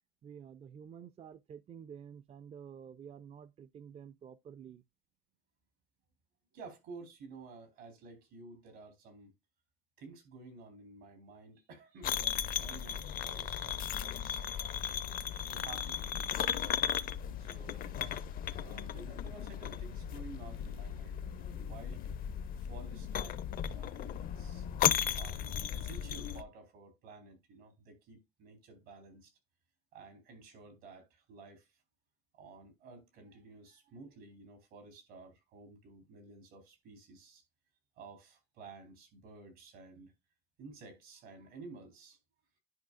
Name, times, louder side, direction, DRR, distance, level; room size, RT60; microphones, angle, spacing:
voice 1, 0.2-4.8, right 8 dB, 40° right, 0.4 m, -50 dB
voice 2, 6.5-9.3 10.0-15.0 15.4-16.7 17.4-18.0 18.5-22.1 22.6-24.7 25.1-29.3 29.9-31.7 32.3-37.4 38.0-40.1 40.6-42.2, right 3 dB, 90° right, 3.7 m, -53 dB
sound 1, 12.0-26.4, left 9 dB, 60° left, 0.5 m, -36 dB
10.5 x 5.5 x 2.4 m
cardioid pair, 110°, 17 cm